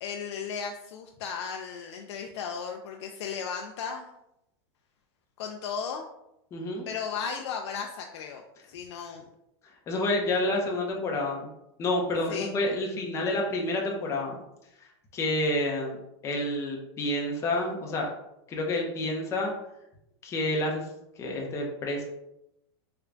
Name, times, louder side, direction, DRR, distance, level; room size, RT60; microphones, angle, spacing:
voice 1, 0.0-4.1 5.4-6.1 6.9-8.4 8.7-9.3 12.3-12.5, left 6 dB, 75° left, 3 dB, 0.4 m, -35 dB
voice 2, 6.5-6.9 9.9-11.5 11.8-14.4 15.1-16.0 16.2-18.1 18.5-19.5 20.2-20.8 21.2-22.0, left 1 dB, 20° left, 0 dB, 0.6 m, -29 dB
3.3 x 2.2 x 3.7 m, 0.84 s
supercardioid pair, 150°, 14 cm